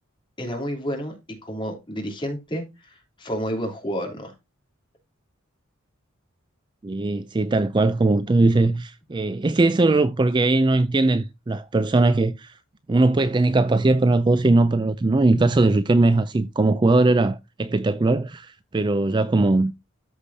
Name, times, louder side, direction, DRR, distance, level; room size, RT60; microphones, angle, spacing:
voice 1, 0.4-1.1 1.4-4.3, equal, 25° left, 2.8 m, -30 dB
voice 2, 6.8-12.5 12.9-19.7, right 2 dB, 20° right, 0.4 m, -20 dB
13.5 x 4.9 x 2.6 m
head